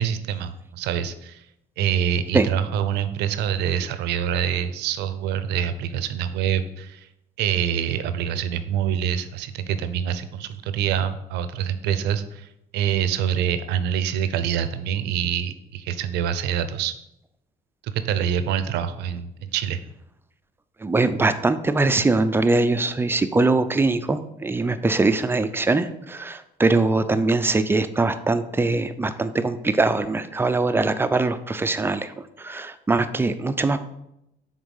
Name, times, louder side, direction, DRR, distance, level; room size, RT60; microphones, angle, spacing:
voice 1, 0.0-1.4 1.8-7.1 7.4-16.9 17.8-19.8, right 9 dB, 85° right, 12 dB, 0.6 m, -25 dB
voice 2, 20.8-33.8, right 3 dB, 15° right, 11 dB, 0.4 m, -22 dB
6.2 x 4.0 x 5.4 m, 0.83 s
cardioid pair, 110°, 17 cm